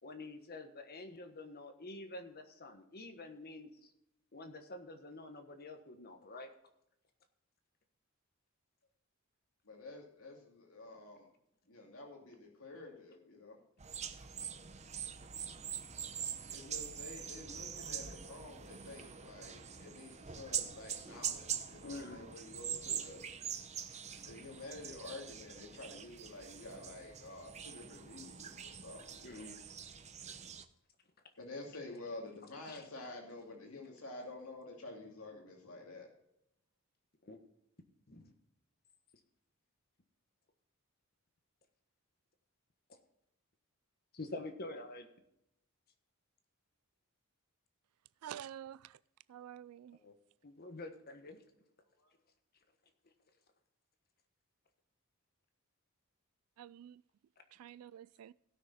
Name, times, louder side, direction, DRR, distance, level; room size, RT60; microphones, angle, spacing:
voice 1, 0.0-3.9 4.3-6.5 21.8-22.3 23.7-24.0 29.2-29.6 32.7-32.9 37.2-37.4 38.1-38.3 44.1-45.1 50.0-50.1 50.4-51.4, left 2 dB, 45° left, 1.3 m, -48 dB
voice 2, 9.6-11.3 11.7-13.6 16.5-23.2 24.2-29.5 31.4-36.1 52.0-52.1, left 2 dB, 70° left, 2.5 m, -49 dB
sound 1, 13.8-30.6, right 8 dB, 30° right, 0.8 m, -44 dB
voice 3, 48.2-49.0 49.3-50.0 56.6-57.0 57.5-58.3, right 10 dB, 90° right, 0.3 m, -49 dB
17.0 x 6.3 x 4.2 m
head